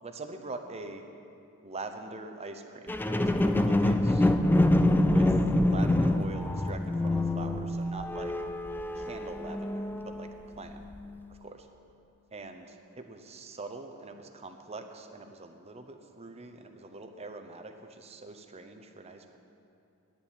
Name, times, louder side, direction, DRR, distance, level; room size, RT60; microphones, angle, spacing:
voice 1, 0.0-1.1 1.6-4.3 5.0-5.3 5.6-8.3 9.0-10.3 10.6-10.8 11.4-11.6 12.3-19.4, right 3 dB, 30° right, 6 dB, 0.7 m, -43 dB
sound 1, 2.9-10.3 10.9-11.0, left 1 dB, 10° left, 0.3 m, -26 dB
9.7 x 7.2 x 8.7 m, 2.7 s
head